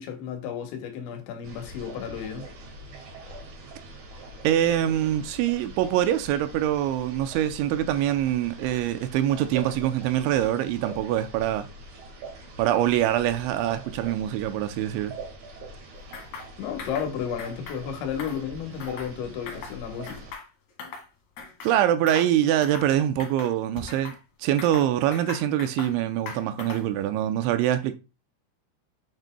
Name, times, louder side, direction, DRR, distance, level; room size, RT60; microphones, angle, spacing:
voice 1, 0.0-2.5 16.6-20.3, left 8 dB, 75° left, 3.4 m, -33 dB
sound 1, 1.4-20.3, right 2 dB, 55° right, 2.5 m, -43 dB
voice 2, 4.4-11.7 12.6-15.1 21.6-27.9, right 11 dB, 80° right, 2.9 m, -24 dB
sound 2, 16.1-16.5 16.8-17.1 17.4-17.8 18.1-19.1 19.5-19.8 20.1-21.1 21.4-21.7 22.1-22.3 22.6-22.9 23.2-24.2 24.6-26.0 26.3-26.9, left 5 dB, 50° left, 2.5 m, -40 dB
9.0 x 6.5 x 2.2 m
omnidirectional pair, 5.4 m